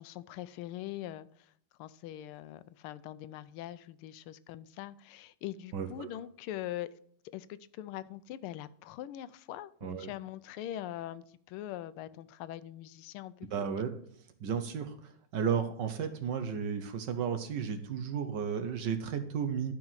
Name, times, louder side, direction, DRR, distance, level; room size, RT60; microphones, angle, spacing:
voice 1, 0.0-1.5 1.8-6.9 7.3-13.7, left 13 dB, 90° left, 16 dB, 1.5 m, -42 dB
voice 2, 5.7-6.1 9.8-10.1 13.5-14.0 14.4-19.7, right 7 dB, 65° right, 9 dB, 1.4 m, -33 dB
11.5 x 4.9 x 5.6 m, 0.62 s
omnidirectional pair, 2.3 m